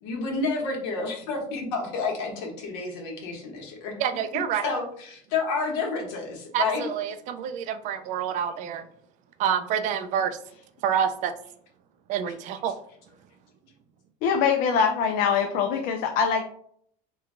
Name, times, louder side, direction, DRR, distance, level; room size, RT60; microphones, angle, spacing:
voice 1, 0.0-4.0 4.6-6.9, left 4 dB, 75° left, 1 dB, 1.1 m, -30 dB
voice 2, 4.0-4.7 6.5-8.9 9.4-10.4 10.8-11.3 12.1-12.8, right 8 dB, 50° right, 9 dB, 0.4 m, -27 dB
voice 3, 14.2-16.4, left 6 dB, 60° left, 4 dB, 0.4 m, -23 dB
3.0 x 2.2 x 3.7 m, 0.65 s
cardioid pair, 140°, 16 cm